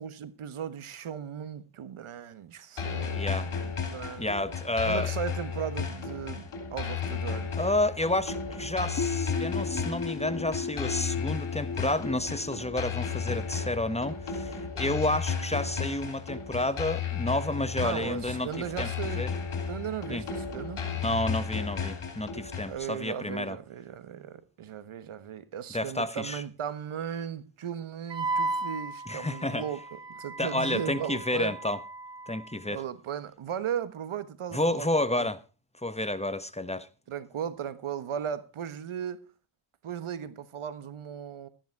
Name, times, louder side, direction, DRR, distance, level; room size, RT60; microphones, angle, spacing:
voice 1, 0.0-4.3 4.8-6.4 6.7-7.6 17.8-19.2 19.7-20.8 22.7-31.6 32.7-35.3 37.1-39.2 39.8-41.5, right 8 dB, 85° right, 1.4 m, -37 dB
sound 1, 2.8-22.8, left 6 dB, 80° left, 3.4 m, -34 dB
voice 2, 3.1-3.5 4.2-5.1 7.6-18.5 18.8-18.9 19.2-19.3 20.1-20.2 21.0-23.6 25.7-26.4 29.1-29.6 30.4-31.8 32.3-32.8 34.5-35.4 35.8-36.9, left 1 dB, 15° left, 1.1 m, -30 dB
sound 2, 9.0-14.5, left 4 dB, 40° left, 1.3 m, -36 dB
Wind instrument woodwind instrument, 28.1-32.7, right 3 dB, 60° right, 2.4 m, -36 dB
13.5 x 10.5 x 4.6 m
cardioid pair, 75°, 49 cm